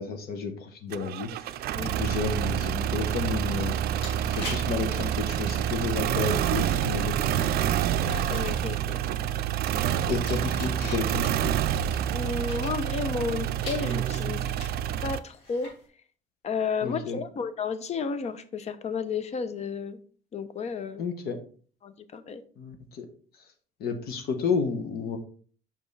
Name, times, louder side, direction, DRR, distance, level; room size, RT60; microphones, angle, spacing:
voice 1, 0.0-3.8 4.3-7.3 10.1-11.6 16.8-17.2 21.0-21.4 22.6-23.1 23.4-23.5 23.8-25.2, left 5 dB, 65° left, 6 dB, 1.0 m, -31 dB
sound 1, 0.9-15.2, right 10 dB, 65° right, 0.4 m, -28 dB
sound 2, 3.7-15.9, left 2 dB, 85° left, 2.6 m, -46 dB
voice 2, 8.1-9.0 12.1-14.4 15.0-15.7 16.4-20.0 20.3-21.0 21.8-22.4, left 5 dB, 40° left, 13 dB, 0.6 m, -32 dB
5.4 x 5.3 x 3.2 m, 0.43 s
cardioid pair, 110°, 17 cm